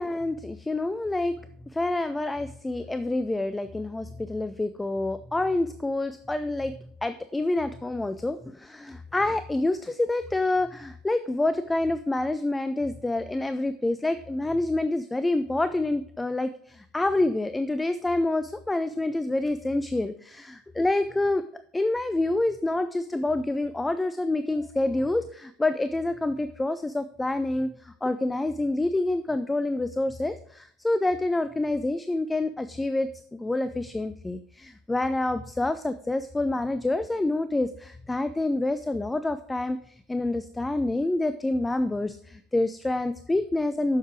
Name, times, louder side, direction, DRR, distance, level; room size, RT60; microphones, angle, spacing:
voice 1, 0.0-1.3 1.7-6.8 7.0-21.4 21.7-44.0, left 2 dB, 10° left, 11 dB, 0.4 m, -27 dB
7.4 x 6.6 x 4.8 m, 0.63 s
figure-of-eight pair, 70°, 0 cm